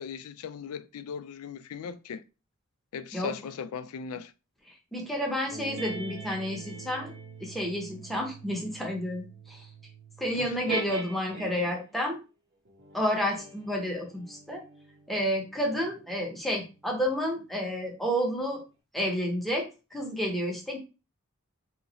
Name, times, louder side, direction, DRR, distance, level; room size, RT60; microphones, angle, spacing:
voice 1, 0.0-2.2 2.9-4.3 10.3-10.6, left 6 dB, 80° left, 0.3 m, -38 dB
voice 2, 4.9-7.1 7.4-9.7 10.2-12.2 12.9-14.6 15.1-18.6 18.9-20.8, equal, ahead, 0.7 m, -30 dB
Baby Blue, 5.5-11.9 12.7-17.6, right 2 dB, 50° right, 0.8 m, -43 dB
2.9 x 2.5 x 4.0 m
head